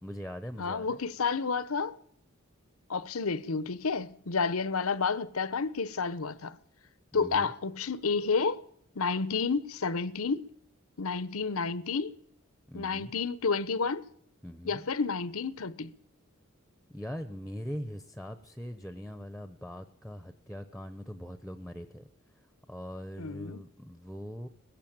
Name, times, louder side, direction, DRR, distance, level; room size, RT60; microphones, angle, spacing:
voice 1, 0.0-1.0 7.1-7.5 12.7-13.1 14.4-14.8 16.9-22.1 22.7-24.5, equal, ahead, 0.8 m, -41 dB
voice 2, 0.6-1.9 2.9-6.6 7.1-8.6 8.9-10.5 11.0-12.1 12.7-14.0 14.6-15.9 23.2-23.6, left 4 dB, 85° left, 0.9 m, -30 dB
19.0 x 15.5 x 8.8 m
head